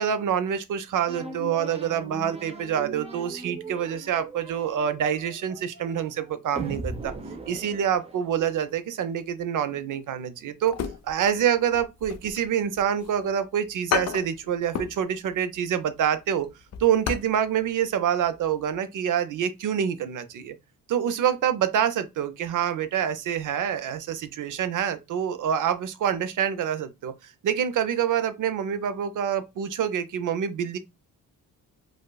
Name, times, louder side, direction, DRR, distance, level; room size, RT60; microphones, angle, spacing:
voice 1, 0.0-7.1 7.5-10.8 11.0-16.5 16.8-20.6 20.9-30.8, right 9 dB, 60° right, 0.5 m, -26 dB
sound 1, 1.1-8.6, right 3 dB, 20° right, 0.6 m, -38 dB
sound 2, 10.6-11.4 11.7-13.1 13.5-13.6 13.9-15.0 15.3-15.5 15.9-17.4 17.6-17.7 18.2-18.5 18.7-18.8, left 8 dB, 50° left, 0.5 m, -32 dB
4.9 x 2.0 x 2.2 m
cardioid pair, 90°, 35 cm